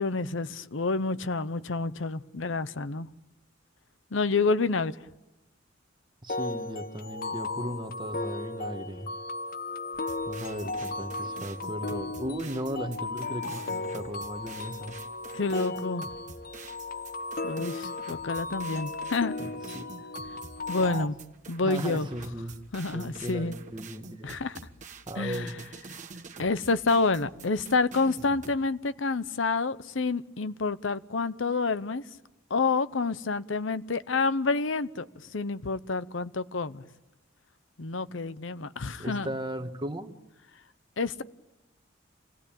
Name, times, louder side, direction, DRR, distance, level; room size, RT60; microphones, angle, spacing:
voice 1, 0.0-3.1 4.1-5.0 15.3-16.1 17.4-19.4 20.7-21.1 21.5-22.1 22.7-23.6 24.2-24.6 25.2-25.5 26.4-32.0 32.5-35.1 35.3-36.8 37.8-39.3 41.0-41.2, left 3 dB, 70° left, 0.8 m, -28 dB
voice 2, 6.2-9.1 10.3-15.0 19.4-19.9 20.8-21.1 21.6-22.5 22.9-24.4 25.1-25.6 39.0-40.1, right 1 dB, 25° right, 1.5 m, -36 dB
sound 1, 6.3-21.1, left 3 dB, 45° left, 0.9 m, -36 dB
sound 2, 9.9-28.6, right 4 dB, 40° right, 1.4 m, -47 dB
28.5 x 17.5 x 8.9 m
head